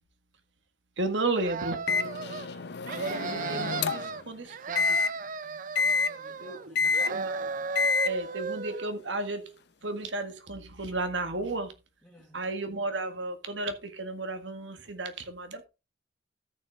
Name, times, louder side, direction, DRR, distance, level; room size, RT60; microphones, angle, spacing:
voice 1, 1.0-1.8 2.9-5.0 5.8-5.9 6.4-7.5 8.0-11.7 12.3-15.6, right 2 dB, 70° right, 1.9 m, -34 dB
sound 1, 1.3-2.5 2.8-4.2 4.5-6.7 6.9-8.9, right 5 dB, 45° right, 0.5 m, -35 dB
Microwave oven, 1.9-4.2 4.8-5.1 5.8-6.1 6.8-7.1 7.8-8.1, left 5 dB, 60° left, 0.7 m, -27 dB
voice 2, 5.4-7.0 12.0-12.4, equal, 10° left, 4.3 m, -56 dB
14.0 x 6.4 x 3.7 m
head